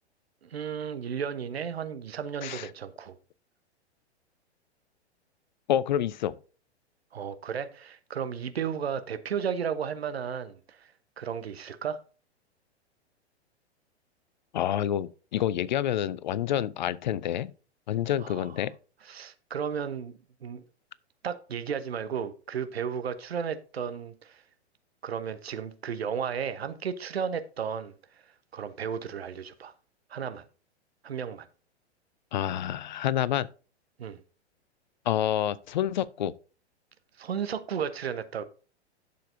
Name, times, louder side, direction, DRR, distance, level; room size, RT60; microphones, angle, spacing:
voice 1, 0.4-3.2 7.1-10.9 11.2-12.0 18.2-18.5 19.0-20.6 21.2-24.4 25.0-27.9 28.5-29.7 30.1-30.4 31.0-31.5 34.0-34.2 37.2-38.4, right 7 dB, 65° right, 1.0 m, -34 dB
voice 2, 5.7-6.3 14.5-17.5 17.9-18.7 32.3-33.5 35.1-36.3, left 11 dB, 45° left, 0.5 m, -28 dB
11.5 x 6.9 x 2.6 m
figure-of-eight pair, 105°, 34 cm